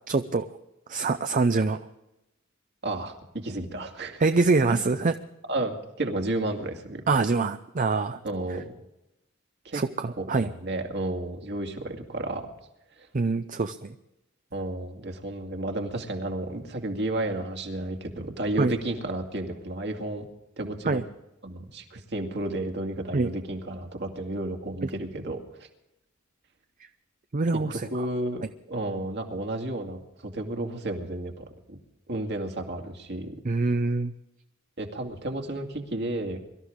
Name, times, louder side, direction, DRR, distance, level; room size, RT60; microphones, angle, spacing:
voice 1, 0.1-0.5 0.9-1.8 4.2-5.1 7.1-8.2 9.7-10.5 13.1-13.9 18.6-18.7 20.8-21.0 23.1-23.3 27.3-28.1 33.4-34.1, right 3 dB, 40° right, 9 dB, 0.6 m, -24 dB
voice 2, 2.8-3.1 3.4-4.2 4.7-4.8 5.5-7.0 8.2-8.7 9.6-9.8 10.2-12.5 13.0-13.1 14.5-20.2 20.6-21.0 21.4-25.7 27.7-31.8 32.1-33.4 34.8-36.4, right 1 dB, 55° right, 4 dB, 2.2 m, -32 dB
23.5 x 13.0 x 3.6 m, 0.91 s
head